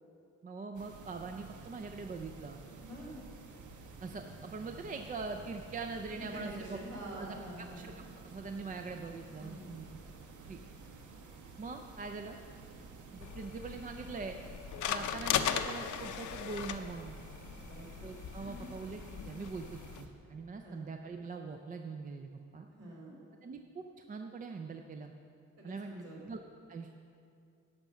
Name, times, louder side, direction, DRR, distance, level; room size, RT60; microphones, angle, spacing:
voice 1, 0.4-2.6 4.0-6.8 7.1-7.4 7.8-7.9 8.2-10.0 10.5-10.6 11.6-12.4 13.1-14.4 14.9-17.2 18.0-19.0 19.3-22.7 23.4-25.1 25.6-25.9 26.2-26.4 26.7-27.0, right 4 dB, 30° right, 5 dB, 0.4 m, -42 dB
sound 1, 0.7-20.1, right 3 dB, 75° right, 1.0 m, -51 dB
voice 2, 2.8-3.2 6.1-7.8 9.4-9.7 17.6-17.9 18.4-18.7 20.6-20.8 22.7-23.2 25.6-26.3, right 1 dB, 55° right, -3 dB, 2.9 m, -46 dB
sound 2, 13.2-20.0, left 8 dB, 75° left, 0.6 m, -38 dB
12.0 x 5.6 x 7.1 m, 2.4 s
wide cardioid pair, 165°, 30 cm